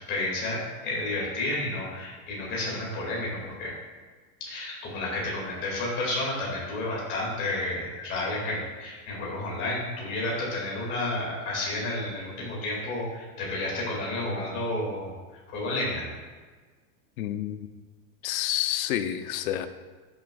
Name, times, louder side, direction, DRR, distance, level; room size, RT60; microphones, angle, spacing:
voice 1, 0.1-3.7 4.4-15.1 15.5-16.1, left 2 dB, 25° left, -4 dB, 2.1 m, -31 dB
voice 2, 17.2-17.7 18.2-19.7, left 12 dB, 65° left, 9 dB, 0.6 m, -29 dB
12.0 x 6.3 x 2.3 m, 1.4 s
supercardioid pair, 180°, 46 cm